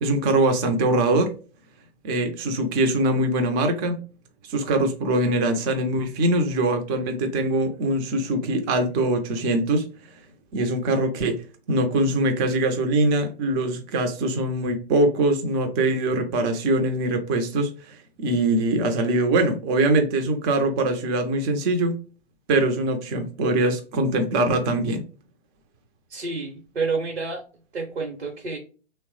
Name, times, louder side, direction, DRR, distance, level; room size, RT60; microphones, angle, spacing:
voice 1, 0.0-1.3 2.0-4.0 4.5-9.9 10.5-11.4 11.7-22.0 22.5-25.0, right 2 dB, 20° right, 6 dB, 0.4 m, -22 dB
voice 2, 26.1-27.4 27.7-28.6, right 4 dB, 85° right, 2 dB, 0.8 m, -29 dB
3.0 x 2.0 x 2.9 m, 0.37 s
figure-of-eight pair, 115°, 33 cm